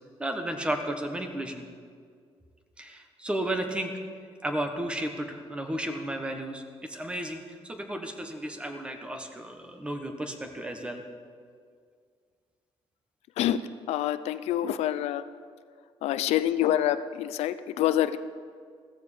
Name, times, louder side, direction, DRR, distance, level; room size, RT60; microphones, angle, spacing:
voice 1, 0.2-1.7 2.8-3.9 4.4-11.0, right 1 dB, 10° right, 5 dB, 1.2 m, -33 dB
voice 2, 13.9-15.2 16.0-18.2, left 12 dB, 90° left, 13 dB, 0.5 m, -26 dB
15.0 x 14.5 x 5.0 m, 2.1 s
cardioid pair, 165°, 11 cm